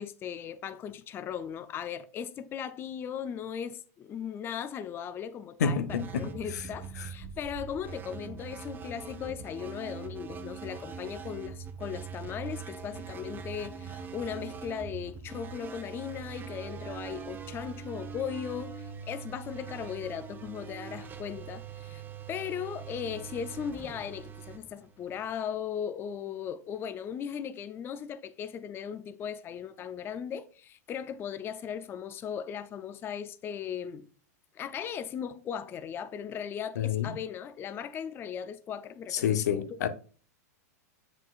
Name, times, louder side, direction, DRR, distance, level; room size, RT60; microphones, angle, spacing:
voice 1, 0.0-22.0 22.3-34.1 34.5-39.4, left 8 dB, 25° left, 0.4 m, -38 dB
voice 2, 5.6-6.3 36.8-37.1 39.1-39.9, left 7 dB, 80° left, 0.7 m, -28 dB
sound 1, 5.9-25.4, right 6 dB, 20° right, 0.8 m, -42 dB
7.6 x 5.6 x 2.4 m
hypercardioid pair, 115°, 9 cm